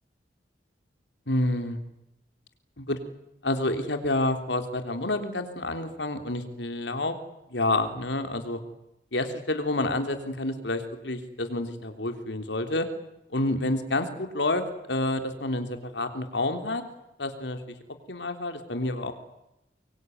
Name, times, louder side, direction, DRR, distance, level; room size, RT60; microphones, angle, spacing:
voice 1, 1.3-1.8 2.8-3.0 3.4-7.2 7.5-8.6 9.1-12.9 13.3-16.8 17.2-17.8 18.1-19.1, left 2 dB, 80° left, 7 dB, 3.5 m, -29 dB
24.5 x 23.5 x 9.5 m, 0.89 s
head